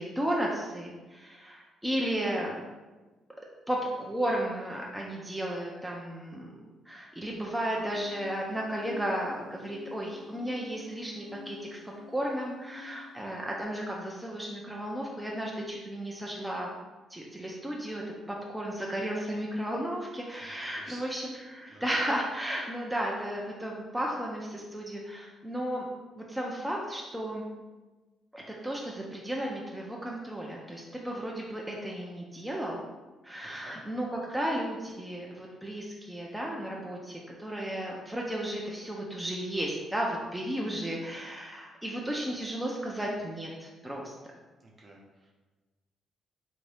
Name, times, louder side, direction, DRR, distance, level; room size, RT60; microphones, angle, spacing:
voice 1, 0.0-2.6 3.7-6.5 6.9-11.8 12.1-16.8 17.1-25.9 26.2-27.4 28.3-32.8 33.2-44.1, right 1 dB, 5° right, -2 dB, 0.5 m, -34 dB
sound 1, 7.7-13.6, left 6 dB, 70° right, 0.4 m, -51 dB
voice 2, 20.4-21.1 21.7-21.9 33.4-33.8 44.6-45.3, right 2 dB, 40° right, -2 dB, 0.8 m, -52 dB
3.5 x 2.6 x 3.3 m, 1.2 s
cardioid pair, 90°, 0 cm